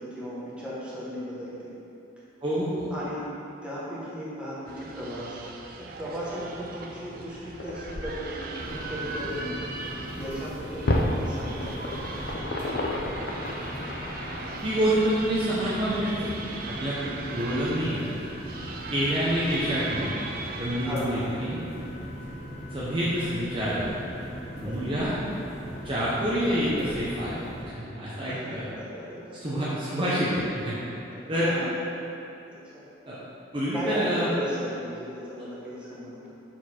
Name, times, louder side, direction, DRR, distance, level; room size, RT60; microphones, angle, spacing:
voice 1, 0.0-1.7 2.9-3.2 3.6-5.4 5.8-12.1 17.0-17.3 20.8-21.3 24.6-24.8 28.3-29.5 31.2-31.8 32.7-32.8 33.7-36.4, equal, 5° right, -8 dB, 1.2 m, -36 dB
voice 2, 2.4-2.9 14.6-16.3 16.6-17.0 17.3-18.0 18.9-20.1 20.6-21.6 22.7-23.9 24.5-25.1 25.8-28.7 29.4-30.7 31.3-31.5 33.1-33.2 33.5-34.3, equal, 25° right, -9 dB, 0.8 m, -27 dB
sound 1, 4.7-21.0, right 3 dB, 50° right, 0.5 m, -39 dB
sound 2, 7.2-14.6, left 1 dB, 55° left, 0.6 m, -32 dB
sound 3, 8.6-27.6, equal, 35° left, 1.1 m, -39 dB
6.9 x 4.5 x 4.3 m, 2.9 s
head